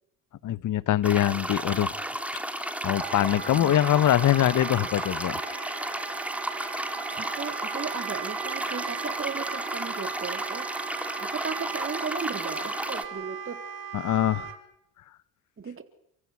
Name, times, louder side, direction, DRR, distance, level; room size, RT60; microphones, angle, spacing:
voice 1, 0.4-2.0 2.5-5.4 13.9-14.5, left 12 dB, 50° left, 1.0 m, -23 dB
sound 1, 1.0-13.0, right 1 dB, 5° right, 3.2 m, -33 dB
Wind instrument woodwind instrument, 2.8-14.6, right 8 dB, 65° right, 5.6 m, -38 dB
voice 2, 3.5-4.1 7.2-10.7 11.2-13.7 15.6-15.8, right 5 dB, 35° right, 3.7 m, -36 dB
29.0 x 15.0 x 9.8 m
supercardioid pair, 75°, 38 cm